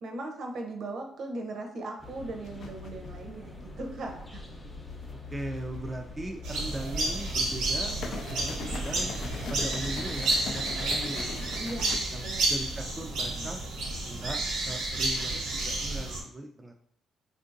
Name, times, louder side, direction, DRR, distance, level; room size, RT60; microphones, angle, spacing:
voice 1, 0.0-4.4 11.6-12.5, right 2 dB, 60° right, 2 dB, 0.6 m, -38 dB
sound 1, 2.0-9.6, left 3 dB, 20° left, 0.6 m, -44 dB
sound 2, 2.4-3.1 5.0-5.8 7.6-12.0, left 5 dB, 65° left, 0.3 m, -41 dB
voice 2, 5.3-7.9 8.3-9.1 9.5-11.3 11.6-11.7 12.1-13.6 14.0-14.4 14.6-16.8, right 1 dB, 20° right, 3 dB, 0.3 m, -39 dB
sound 3, 6.4-16.2, right 2 dB, 90° right, 0.9 m, -31 dB
3.6 x 2.6 x 2.5 m, 0.66 s
cardioid pair, 90°, 0 cm